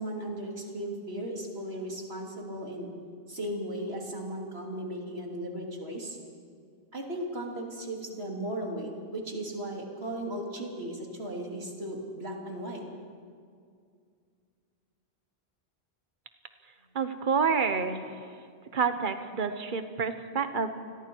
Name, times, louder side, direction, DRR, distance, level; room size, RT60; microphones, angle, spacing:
voice 1, 0.0-2.9 3.3-6.2 6.9-12.8, right 1 dB, 75° right, -1 dB, 3.5 m, -36 dB
voice 2, 16.9-18.2 18.7-20.7, right 5 dB, 50° right, 8 dB, 1.3 m, -28 dB
29.0 x 21.0 x 4.7 m, 2.2 s
omnidirectional pair, 1.1 m